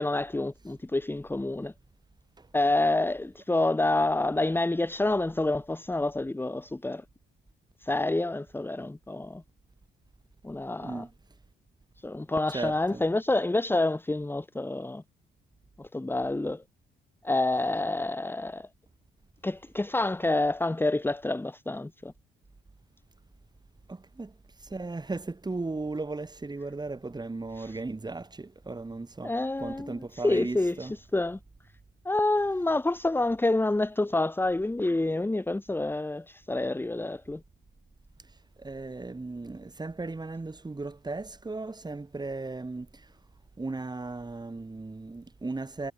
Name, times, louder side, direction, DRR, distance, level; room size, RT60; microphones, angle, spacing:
voice 1, 0.0-1.7 2.5-7.0 7.8-9.4 10.4-11.0 12.0-15.0 15.8-16.6 17.2-18.7 19.4-22.1 27.6-27.7 29.2-30.0 30.2-31.4 32.0-37.4, left 2 dB, 10° left, 1.6 m, -28 dB
voice 2, 12.5-13.0 23.9-24.3 24.7-29.3 29.6-30.9 38.6-42.9 43.6-45.9, right 3 dB, 20° right, 6.9 m, -36 dB
cardioid pair, 90°, 20 cm